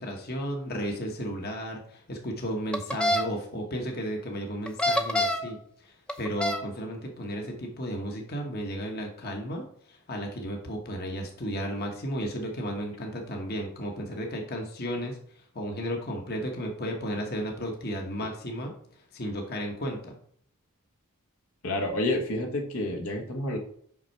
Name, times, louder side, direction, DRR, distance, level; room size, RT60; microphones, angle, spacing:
voice 1, 0.0-15.2 15.5-18.7 19.1-20.2, equal, 45° left, 2 dB, 1.2 m, -34 dB
sound 1, 2.7-3.2 4.7-5.5 6.1-6.6, left 1 dB, 5° left, 0.6 m, -25 dB
voice 2, 21.6-23.6, left 1 dB, 70° left, 3 dB, 1.2 m, -29 dB
5.9 x 5.6 x 4.5 m, 0.64 s
head